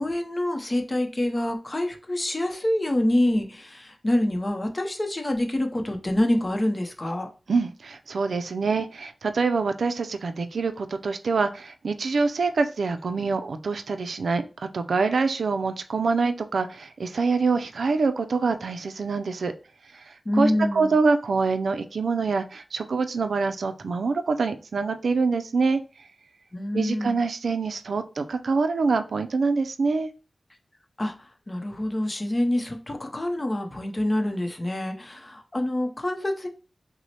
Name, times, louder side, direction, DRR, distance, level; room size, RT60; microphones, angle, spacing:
voice 1, 0.0-7.3 20.2-20.9 26.5-27.2 31.0-36.5, left 1 dB, 30° left, 0.6 m, -26 dB
voice 2, 7.5-19.5 20.3-25.8 26.7-30.1, right 4 dB, 85° right, 0.4 m, -25 dB
5.9 x 2.0 x 2.8 m
wide cardioid pair, 100°, 0 cm